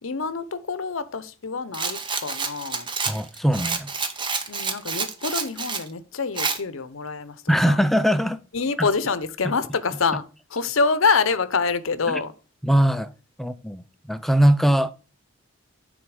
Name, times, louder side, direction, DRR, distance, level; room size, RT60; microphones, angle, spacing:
voice 1, 0.0-2.9 4.5-7.8 8.5-10.2 10.5-12.3, left 4 dB, 70° left, 0.7 m, -26 dB
Rattle, 1.7-5.9 6.4-6.6, right 4 dB, 20° right, 0.7 m, -28 dB
voice 2, 3.1-3.9 7.5-8.4 8.8-8.9 12.1-12.2 12.6-13.1 13.4-14.9, equal, ahead, 0.3 m, -21 dB
9.4 x 3.9 x 4.8 m
head